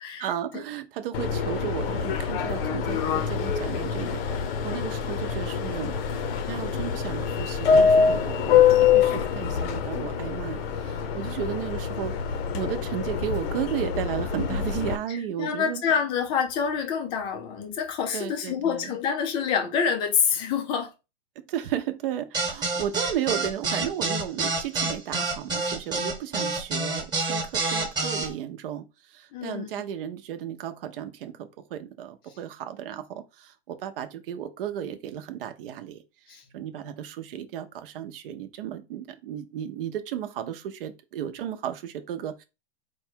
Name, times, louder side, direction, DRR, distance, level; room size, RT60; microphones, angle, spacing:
voice 1, 0.2-5.9 6.5-12.1 12.5-15.8 18.1-18.9 21.5-36.0 36.5-42.4, right 10 dB, 55° right, 0.7 m, -34 dB
Subway metro underground, 1.1-15.0, left 7 dB, 60° left, 0.7 m, -25 dB
voice 2, 15.4-20.9 29.3-29.7 36.3-36.4, left 7 dB, 15° left, 0.4 m, -27 dB
sound 1, 22.3-28.3, right 3 dB, 10° right, 1.1 m, -27 dB
4.6 x 2.3 x 4.4 m
supercardioid pair, 160°, 34 cm